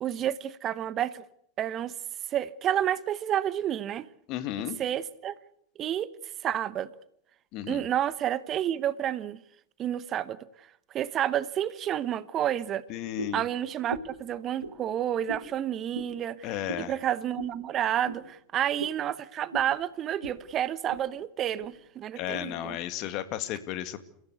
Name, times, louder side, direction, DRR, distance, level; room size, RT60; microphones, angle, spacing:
voice 1, 0.0-1.2 1.6-1.9 2.3-4.1 4.8-5.3 5.8-6.1 6.4-6.9 7.7-9.4 9.8-12.8 13.3-22.8, right 10 dB, 35° right, 1.0 m, -30 dB
voice 2, 4.3-4.8 7.5-7.9 12.9-13.4 16.4-17.0 22.1-24.0, left 12 dB, 45° left, 2.1 m, -34 dB
sound 1, 13.2-13.4 13.9-14.2 14.6-14.8 15.3-15.5 15.9-16.1 16.7-16.9 17.4-17.5 18.0-18.2 18.8-19.0 19.5-19.7 20.2-20.4 20.7-21.1 21.6-21.7 22.3-22.4, right 3 dB, 85° right, 2.0 m, -38 dB
29.0 x 15.5 x 8.3 m
figure-of-eight pair, 85°, 0 cm